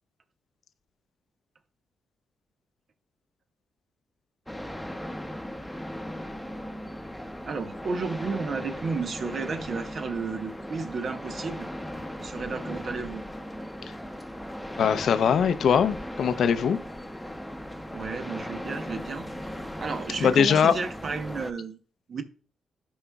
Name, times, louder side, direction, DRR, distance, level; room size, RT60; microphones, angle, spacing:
sound 1, 4.5-21.5, equal, 5° left, 0.8 m, -38 dB
voice 1, 7.5-11.7 12.2-13.2 17.9-19.3 19.8-21.8 22.1-22.2, right 4 dB, 60° right, 0.8 m, -32 dB
voice 2, 14.8-16.8 20.2-20.7, left 7 dB, 70° left, 0.5 m, -21 dB
12.5 x 4.7 x 2.3 m
supercardioid pair, 55°, 0 cm